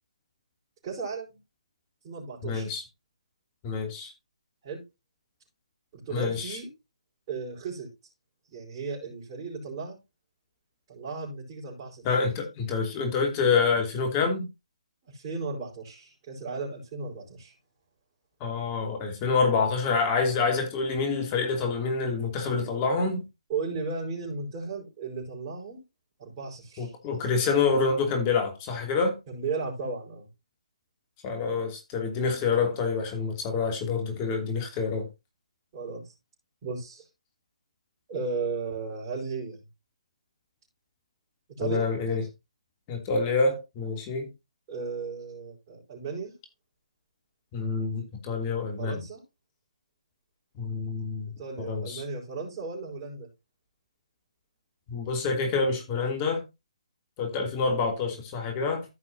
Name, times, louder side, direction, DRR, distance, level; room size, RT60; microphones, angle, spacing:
voice 1, 0.8-1.4 2.0-2.7 4.6-4.8 5.9-6.7 7.3-7.9 8.5-10.0 10.9-12.0 15.0-17.5 23.5-25.8 26.2-26.9 29.3-30.3 35.7-36.1 36.6-37.1 38.1-39.6 41.6-41.9 44.7-46.3 48.8-49.2 51.4-53.3, right 4 dB, 30° right, 5.3 m, -35 dB
voice 2, 2.4-2.8 3.6-4.1 6.1-6.6 12.0-14.5 18.4-23.2 26.8-29.2 31.2-35.1 41.6-42.2 42.9-44.3 47.5-49.0 50.5-51.3 51.6-52.0 54.9-56.4 57.2-58.8, left 4 dB, 25° left, 3.0 m, -27 dB
15.0 x 6.0 x 2.8 m
figure-of-eight pair, 145°, 4 cm